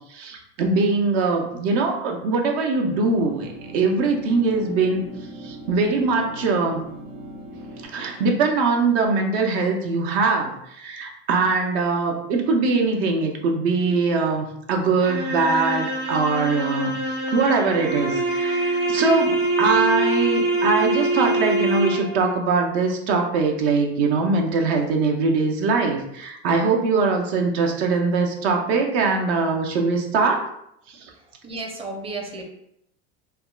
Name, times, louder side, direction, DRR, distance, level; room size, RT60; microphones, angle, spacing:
voice 1, 0.1-5.1 5.4-6.8 7.8-16.9 17.3-30.5 30.9-31.1, right 4 dB, 65° right, 2 dB, 0.7 m, -22 dB
sound 1, 2.8-7.9, right 1 dB, 85° right, 1.1 m, -39 dB
sound 2, 15.0-22.3, right 2 dB, 45° right, 1.3 m, -24 dB
voice 2, 31.1-32.4, right 3 dB, 15° right, 2 dB, 0.6 m, -33 dB
3.5 x 2.2 x 2.3 m, 0.76 s
hypercardioid pair, 90°, 35 cm